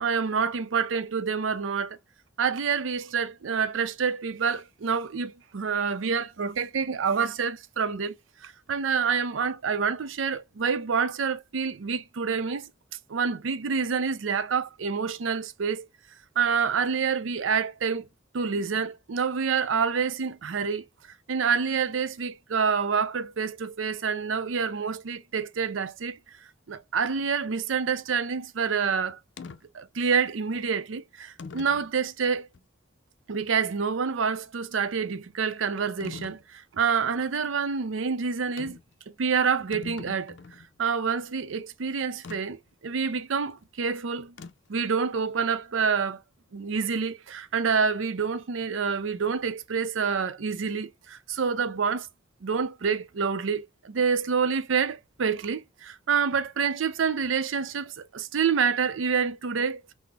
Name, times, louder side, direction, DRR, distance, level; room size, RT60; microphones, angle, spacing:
voice 1, 0.0-2.0 2.4-12.7 13.1-15.9 16.4-18.1 18.3-20.9 21.3-26.2 26.7-29.2 29.7-32.5 33.3-38.8 39.2-40.4 40.8-44.3 44.7-46.2 46.5-52.1 52.4-59.8, right 6 dB, 90° right, 0.5 m, -27 dB
sound 1, 29.4-29.6 30.5-30.6 31.4-31.9 32.5-32.6 36.0-36.4 38.6-38.9 39.3-39.4 39.6-40.7 42.2-42.4 44.4-44.8, left 4 dB, 65° left, 0.5 m, -42 dB
5.8 x 2.0 x 3.3 m
head